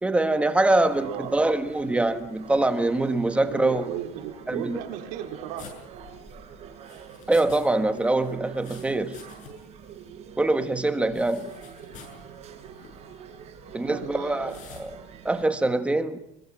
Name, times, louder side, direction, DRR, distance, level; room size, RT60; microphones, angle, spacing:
voice 1, 0.0-3.9 4.5-4.8 7.3-9.2 10.4-11.5 13.7-15.0 15.2-16.2, right 2 dB, 10° right, 1.4 m, -24 dB
sound 1, 0.7-15.5, right 7 dB, 45° right, 4.4 m, -46 dB
voice 2, 1.0-1.4 3.5-5.8 13.8-14.7, right 10 dB, 80° right, 4.0 m, -35 dB
sound 2, 5.6-7.7 7.9-9.7 10.0-10.1 11.1-12.2 12.7-13.0 14.5-14.9, left 6 dB, 55° left, 8.0 m, -48 dB
25.5 x 22.5 x 6.3 m
cardioid pair, 155°, 16 cm